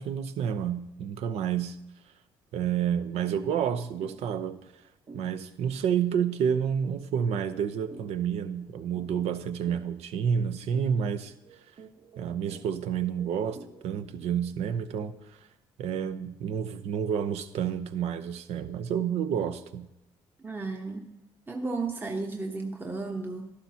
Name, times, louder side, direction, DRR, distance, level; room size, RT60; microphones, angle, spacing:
voice 1, 0.0-1.8 2.5-4.6 5.1-11.3 12.2-13.6 13.8-15.1 15.8-19.9, right 8 dB, 70° right, 10 dB, 0.7 m, -29 dB
sound 1, 4.0-4.2 4.5-4.7 5.1-15.3, right 4 dB, 45° right, 1.3 m, -51 dB
voice 2, 20.4-21.1 21.5-23.5, right 3 dB, 20° right, 2 dB, 1.0 m, -33 dB
12.5 x 11.5 x 2.8 m, 0.92 s
supercardioid pair, 75°, 11 cm